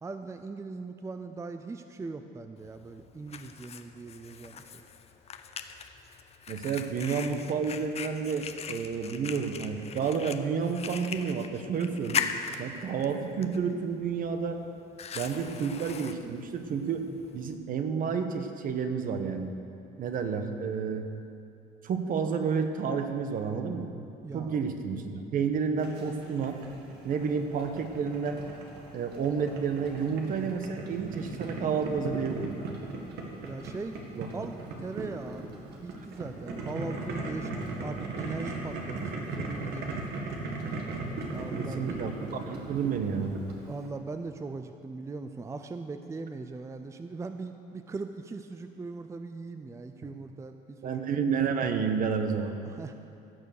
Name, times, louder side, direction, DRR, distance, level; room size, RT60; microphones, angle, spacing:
voice 1, 0.0-4.7 24.2-24.6 33.4-40.0 41.3-42.0 43.7-51.1 52.7-52.9, right 3 dB, 15° right, 7 dB, 0.5 m, -40 dB
Fire, 2.6-17.6, left 6 dB, 40° left, 0.7 m, -40 dB
voice 2, 6.5-12.2 12.6-14.6 15.1-17.0 17.3-19.5 20.0-21.1 21.8-23.9 24.3-26.6 27.0-28.4 28.9-32.5 34.1-34.3 41.6-43.4 50.8-52.5, right 6 dB, 55° right, 7 dB, 1.1 m, -30 dB
Boiling, 25.8-43.9, right 3 dB, 75° right, 2.0 m, -38 dB
16.0 x 6.9 x 6.5 m, 2.6 s
cardioid pair, 110°, 17 cm